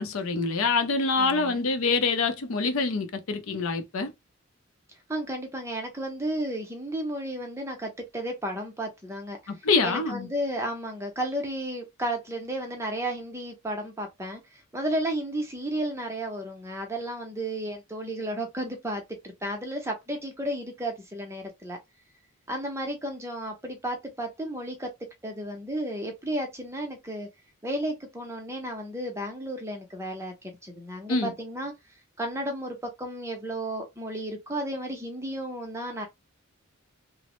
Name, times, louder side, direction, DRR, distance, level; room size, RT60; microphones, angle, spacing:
voice 1, 0.0-4.1 9.5-10.3 31.1-31.3, left 4 dB, 70° left, 0.5 m, -26 dB
voice 2, 1.2-1.6 5.1-9.5 9.8-21.8 22.5-24.9 25.2-27.3 27.6-31.7 32.2-36.1, right 1 dB, 10° right, 0.6 m, -33 dB
3.0 x 2.0 x 2.9 m
head